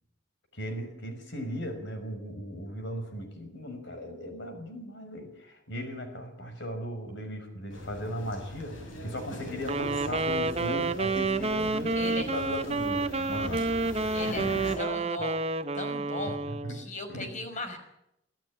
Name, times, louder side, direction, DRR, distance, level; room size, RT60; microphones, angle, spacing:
voice 1, 0.5-13.7 14.6-14.7 16.5-16.8 17.1-17.3, equal, 65° left, 7 dB, 5.7 m, -37 dB
sound 1, 7.7-14.8, left 1 dB, 85° left, 6.7 m, -41 dB
Wind instrument woodwind instrument, 9.6-16.9, right 3 dB, 35° right, 0.9 m, -29 dB
voice 2, 11.9-12.3 14.1-14.4 14.7-15.4 15.7-16.4 16.7-17.8, left 2 dB, 40° left, 6 dB, 5.2 m, -37 dB
25.0 x 13.5 x 9.9 m, 0.82 s
head